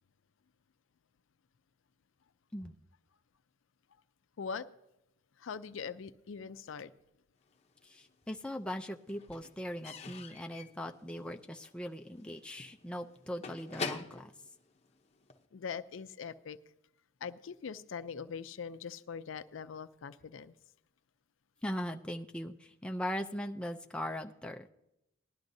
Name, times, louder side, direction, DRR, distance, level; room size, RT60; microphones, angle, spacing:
voice 1, 4.4-4.7 5.4-6.9 15.5-16.6 17.2-20.5, left 6 dB, 70° left, 13 dB, 0.4 m, -42 dB
Slam / Squeak / Wood, 7.6-8.4 8.7-15.5, left 4 dB, 35° left, 0.8 m, -45 dB
voice 2, 7.8-14.3 21.6-24.7, equal, 5° left, 4 dB, 0.4 m, -40 dB
19.0 x 11.5 x 2.7 m, 0.86 s
head